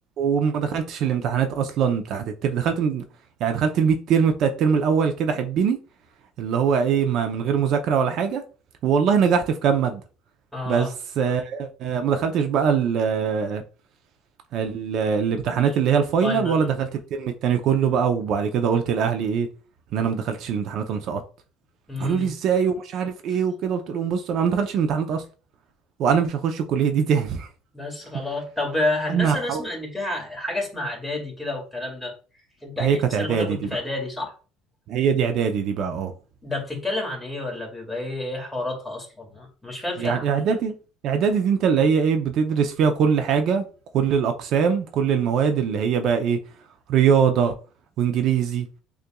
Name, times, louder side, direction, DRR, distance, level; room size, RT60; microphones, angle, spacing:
voice 1, 0.2-3.0 3.4-5.8 6.4-8.4 8.8-10.0 10.7-10.9 11.2-13.6 14.5-19.5 19.9-21.2 22.0-25.2 26.0-27.5 29.1-29.7 32.8-33.7 34.9-36.1 40.0-40.7 41.0-43.6 43.9-46.4 46.9-47.5 48.0-48.7, right 7 dB, 60° right, 0.5 m, -22 dB
voice 2, 10.5-10.9 15.6-15.8 16.2-16.7 21.9-22.3 27.7-32.2 32.6-34.3 36.4-40.3, left 2 dB, 5° left, 1.9 m, -30 dB
6.6 x 2.5 x 2.2 m
cardioid pair, 110°, 0 cm